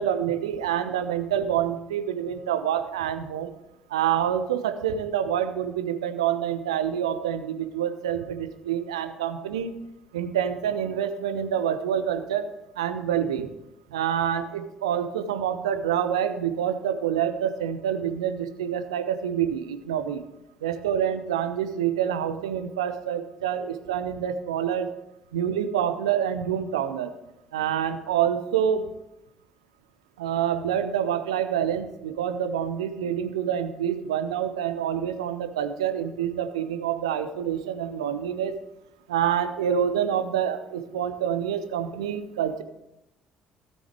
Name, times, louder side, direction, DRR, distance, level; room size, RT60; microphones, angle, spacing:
voice 1, 0.0-3.5 3.9-9.7 10.1-12.5 12.8-13.5 13.9-20.3 20.6-24.9 25.3-27.1 27.5-28.9 30.2-38.5 39.1-42.6, right 9 dB, 75° right, 9 dB, 0.7 m, -27 dB
16.5 x 6.3 x 3.4 m, 0.92 s
figure-of-eight pair, 50°, 3 cm